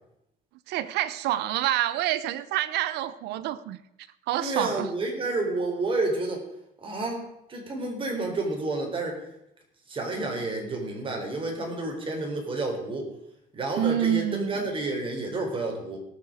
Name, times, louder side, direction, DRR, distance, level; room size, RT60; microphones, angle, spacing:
voice 1, 0.7-3.8 4.3-4.9 13.8-14.7, right 12 dB, 85° right, 0.7 m, -27 dB
voice 2, 4.4-6.4 6.8-9.2 9.9-13.1 13.5-16.0, right 2 dB, 30° right, 3.7 m, -30 dB
18.0 x 6.6 x 4.9 m
cardioid pair, 110°, 17 cm